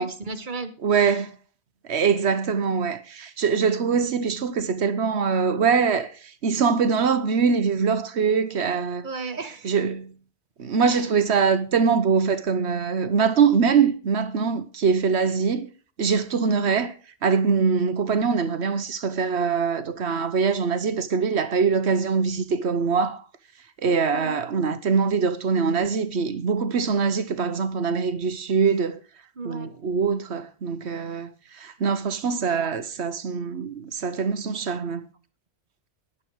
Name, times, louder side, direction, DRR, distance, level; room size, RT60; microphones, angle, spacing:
voice 1, 0.0-1.1 9.0-9.7 10.9-11.0 24.1-24.4 29.4-29.7, right 3 dB, 45° right, 1.3 m, -35 dB
voice 2, 0.8-1.3 1.9-6.1 6.4-9.1 9.6-10.1 10.6-15.7 16.0-16.9 17.2-23.2 23.8-29.0 29.4-31.3 31.6-35.0, right 5 dB, 65° right, 1.2 m, -23 dB
11.5 x 10.0 x 4.7 m
omnidirectional pair, 1.2 m